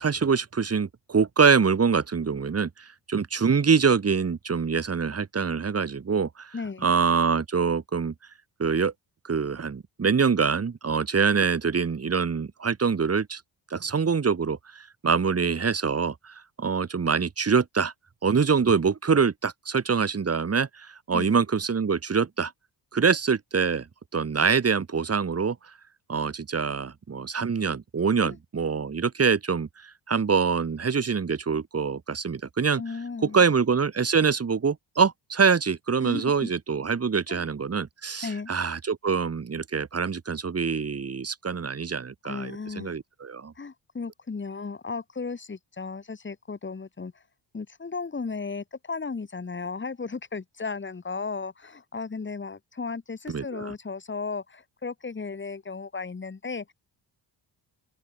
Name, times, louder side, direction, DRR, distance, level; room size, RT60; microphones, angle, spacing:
voice 1, 0.0-6.5 6.8-8.1 8.6-8.9 9.3-13.4 13.7-17.9 18.2-22.5 22.9-23.9 24.1-25.6 26.1-29.7 30.1-32.8 33.2-43.5 53.3-53.7, right 5 dB, 30° right, 4.5 m, -25 dB
voice 2, 6.5-6.9 21.1-21.3 28.2-28.4 32.8-33.4 36.0-36.5 37.3-37.4 38.2-38.5 42.2-43.0 43.6-47.2 47.5-56.7, left 4 dB, 25° left, 4.3 m, -35 dB
open air
cardioid pair, 150°, 46 cm